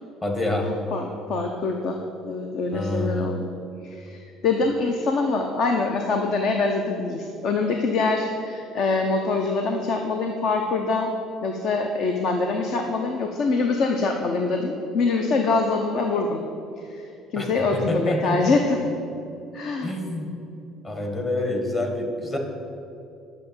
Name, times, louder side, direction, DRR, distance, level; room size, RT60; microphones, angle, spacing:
voice 1, 0.2-0.7 2.7-3.3 17.3-18.6 19.8-20.3 20.8-22.4, left 1 dB, 20° left, 3 dB, 1.5 m, -27 dB
voice 2, 0.9-2.0 2.2-3.5 3.8-11.1 11.4-16.4 16.8-18.8 19.5-19.9, left 3 dB, 50° left, 3 dB, 0.9 m, -24 dB
10.5 x 6.4 x 8.6 m, 2.6 s
cardioid pair, 150°, 0 cm